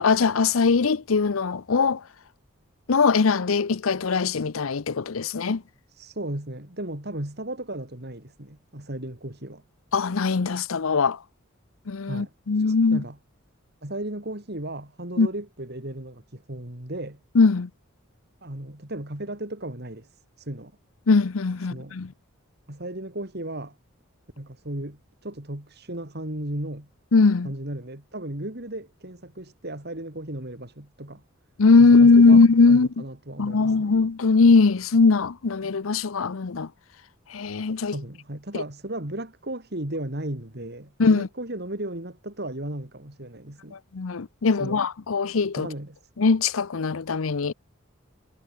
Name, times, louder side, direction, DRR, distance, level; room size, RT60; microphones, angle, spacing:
voice 1, 0.0-2.0 2.9-5.6 9.9-11.2 11.9-13.0 15.2-15.3 17.3-17.7 21.1-22.1 27.1-27.5 31.6-32.9 33.4-36.7 37.3-38.0 38.5-38.6 41.0-41.3 43.9-45.7 46.2-47.5, left 4 dB, 80° left, 0.7 m, -20 dB
voice 2, 5.9-9.6 12.1-12.3 12.7-13.2 13.8-17.2 18.4-20.7 21.7-22.0 22.7-23.8 24.4-26.9 27.4-31.2 31.8-32.4 32.7-33.9 37.9-43.8 44.6-44.8 45.5-46.0, right 1 dB, 50° right, 3.3 m, -35 dB
head